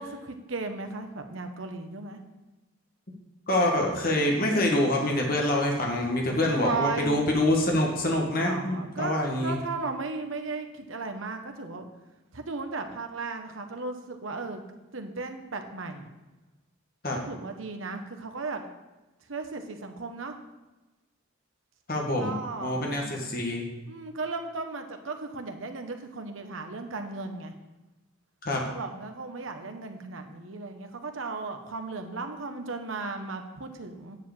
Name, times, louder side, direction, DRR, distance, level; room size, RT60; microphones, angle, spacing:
voice 1, 0.0-2.2 6.3-7.2 8.4-11.9 12.3-14.6 14.9-16.1 17.1-18.6 19.3-20.4 22.0-23.1 23.9-27.5 28.6-34.2, right 3 dB, 80° right, 5 dB, 1.2 m, -36 dB
voice 2, 3.5-9.6 17.0-17.2 21.9-22.3 22.6-23.6 28.4-28.6, left 1 dB, 45° left, 0 dB, 1.7 m, -26 dB
9.8 x 4.8 x 7.3 m, 1.1 s
head